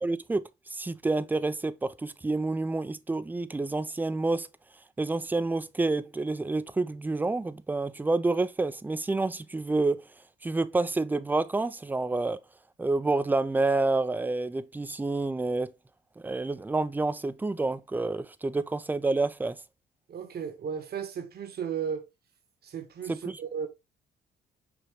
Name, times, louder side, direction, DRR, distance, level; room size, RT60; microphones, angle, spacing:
voice 1, 0.0-4.5 5.0-10.0 10.4-12.4 12.8-15.7 16.2-19.6 23.1-23.4, right 3 dB, 10° right, 0.3 m, -28 dB
voice 2, 20.1-22.0 22.6-23.1 23.4-23.7, right 7 dB, 55° right, 1.0 m, -34 dB
5.0 x 2.9 x 2.8 m
cardioid pair, 90°, 20 cm